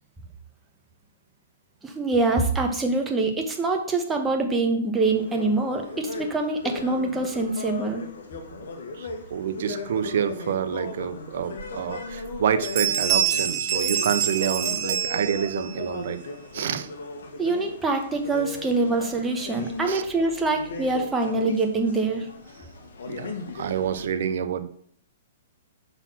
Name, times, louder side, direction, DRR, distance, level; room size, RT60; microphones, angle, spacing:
voice 1, 1.8-8.0 17.4-22.3, right 3 dB, 10° right, 2 dB, 1.1 m, -25 dB
sound 1, 5.1-24.1, left 3 dB, 75° left, 1.3 m, -37 dB
voice 2, 9.0-16.2 16.5-16.9 19.9-20.0 23.1-24.7, right 8 dB, 65° right, 10 dB, 0.6 m, -28 dB
sound 2, 11.6-11.7 12.1-12.4 12.6-15.8, right 9 dB, 40° right, 1.5 m, -26 dB
5.6 x 4.1 x 5.7 m, 0.62 s
hypercardioid pair, 140°, 0 cm